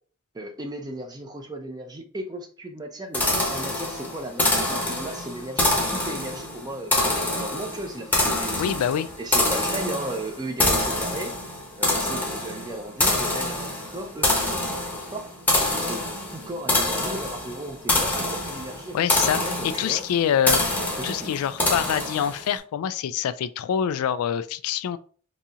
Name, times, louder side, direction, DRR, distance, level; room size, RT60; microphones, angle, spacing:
voice 1, 0.3-6.9 7.4-8.7 9.2-11.3 11.8-15.3 15.9-16.0 16.3-20.0 21.0-21.4, right 1 dB, 20° right, 0.5 m, -36 dB
sound 1, 3.1-22.5, left 2 dB, 10° left, 0.8 m, -26 dB
voice 2, 8.6-9.1 18.9-20.6 21.0-25.0, left 9 dB, 90° left, 0.3 m, -25 dB
4.1 x 2.8 x 2.4 m
head